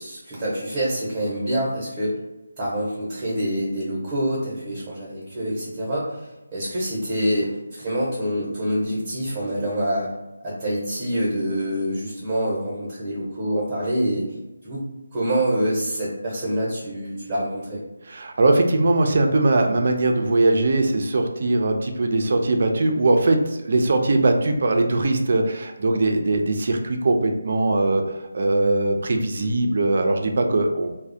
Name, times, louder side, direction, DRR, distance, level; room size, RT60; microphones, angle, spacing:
voice 1, 0.0-2.1 2.6-6.2 6.5-10.1 10.4-14.2 14.6-14.9 15.1-17.8, equal, 15° right, -7 dB, 0.8 m, -26 dB
voice 2, 18.1-31.0, right 2 dB, 50° right, 4 dB, 0.3 m, -21 dB
2.3 x 2.0 x 2.6 m, 1.0 s
figure-of-eight pair, 160°, 0 cm